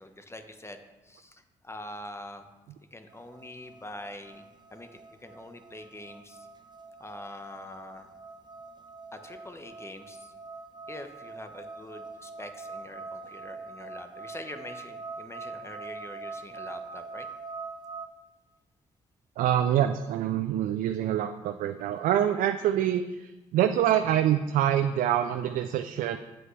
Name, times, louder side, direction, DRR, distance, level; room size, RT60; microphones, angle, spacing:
voice 1, 0.0-2.5 2.9-4.4 4.7-6.5 7.0-8.1 9.1-10.3 10.9-17.3, left 1 dB, 20° left, 7 dB, 1.0 m, -44 dB
sound 1, 3.1-18.1, right 4 dB, 30° right, 0.8 m, -44 dB
voice 2, 19.4-26.2, right 11 dB, 70° right, 8 dB, 0.4 m, -26 dB
7.9 x 7.7 x 3.3 m, 1.1 s
hypercardioid pair, 50°, 14 cm